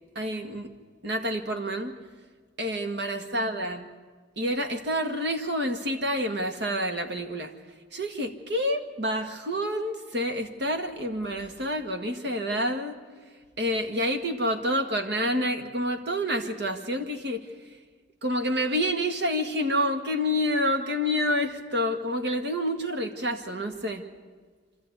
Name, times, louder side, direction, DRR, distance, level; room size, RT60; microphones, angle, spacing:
voice 1, 0.2-0.7 1.0-1.9 2.6-3.9 4.4-7.5 7.9-13.0 13.6-17.4 18.2-24.1, equal, 65° right, 5 dB, 1.9 m, -28 dB
26.0 x 13.5 x 9.6 m, 1.5 s
head